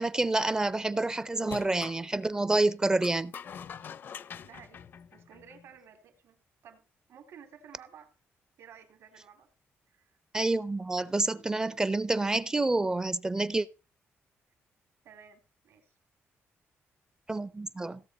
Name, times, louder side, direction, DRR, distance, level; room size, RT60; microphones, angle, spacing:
voice 1, 0.0-3.3 10.3-13.7 17.3-18.0, right 2 dB, 15° right, 0.5 m, -28 dB
sound 1, 1.4-2.0 3.0-5.7, left 7 dB, 50° left, 0.6 m, -44 dB
voice 2, 4.4-8.1 8.6-9.5 9.9-10.2 15.0-16.0, right 7 dB, 80° right, 2.9 m, -54 dB
17.0 x 7.4 x 4.2 m
cardioid pair, 145°, 5 cm